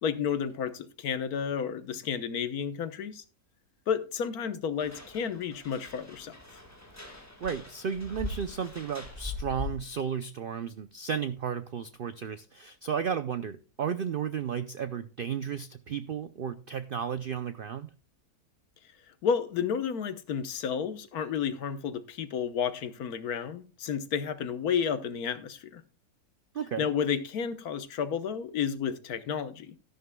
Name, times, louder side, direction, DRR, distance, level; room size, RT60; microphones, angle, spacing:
voice 1, 0.0-3.2 3.9-6.3 19.2-25.8 26.8-29.8, left 7 dB, 75° left, 1.4 m, -31 dB
sound 1, 4.8-10.0, left 2 dB, 10° left, 1.5 m, -41 dB
voice 2, 7.4-17.9 26.5-26.9, right 7 dB, 80° right, 0.5 m, -33 dB
13.0 x 11.0 x 2.2 m
omnidirectional pair, 1.6 m